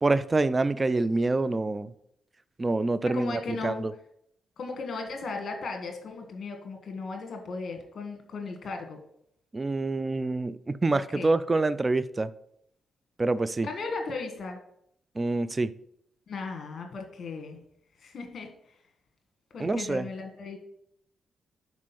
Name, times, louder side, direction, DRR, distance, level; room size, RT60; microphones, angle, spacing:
voice 1, 0.0-1.9 2.6-3.9 9.5-12.3 13.2-13.7 15.2-15.7 19.6-20.0, right 2 dB, 30° right, 0.4 m, -26 dB
voice 2, 3.1-3.9 4.6-9.0 10.9-11.3 13.6-14.6 16.3-17.6 18.0-18.7 19.5-20.6, left 4 dB, 60° left, 1.4 m, -36 dB
5.1 x 4.7 x 5.7 m
cardioid pair, 70°, 0 cm